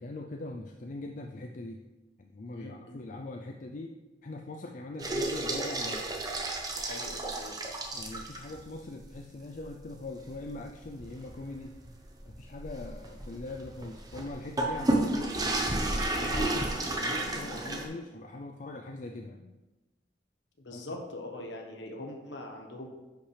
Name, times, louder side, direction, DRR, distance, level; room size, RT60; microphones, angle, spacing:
voice 1, 0.0-1.8 2.2-6.0 7.9-11.8 12.3-15.2 15.9-19.5 20.7-21.0, left 2 dB, 45° left, 3 dB, 0.5 m, -42 dB
voice 2, 2.5-3.0 6.7-7.6 15.1-15.3 20.6-22.9, left 1 dB, 80° left, 2 dB, 1.2 m, -42 dB
sound 1, 5.0-8.6 9.0-9.1 9.6-9.7 10.2-17.9, right 2 dB, 20° right, 0.9 m, -32 dB
10.0 x 5.8 x 3.3 m, 1.1 s
head